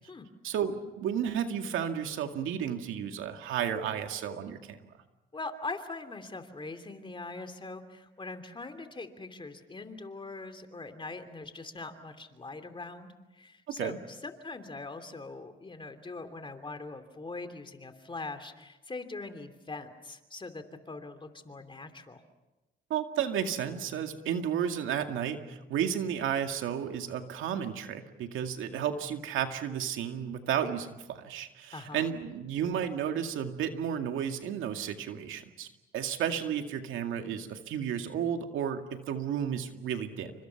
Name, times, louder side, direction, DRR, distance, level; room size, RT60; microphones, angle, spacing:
voice 1, 0.4-4.9 13.7-14.0 22.9-35.7 35.9-40.3, right 8 dB, 85° right, 6 dB, 2.2 m, -32 dB
voice 2, 5.3-22.2 31.7-32.1, left 3 dB, 25° left, 7 dB, 3.0 m, -42 dB
29.0 x 25.5 x 5.9 m, 1.0 s
cardioid pair, 90°, 20 cm